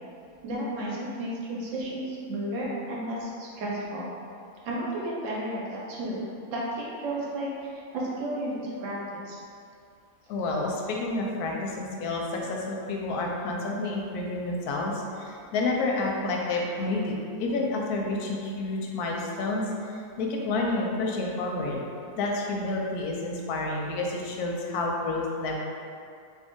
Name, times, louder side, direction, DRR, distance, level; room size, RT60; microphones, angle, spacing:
voice 1, 0.4-4.1 4.6-6.2 6.5-9.4, right 1 dB, 65° right, -5 dB, 0.9 m, -33 dB
voice 2, 10.3-21.8 22.1-25.5, left 2 dB, 90° left, -1 dB, 1.1 m, -29 dB
2.9 x 2.6 x 3.5 m, 2.5 s
omnidirectional pair, 1.6 m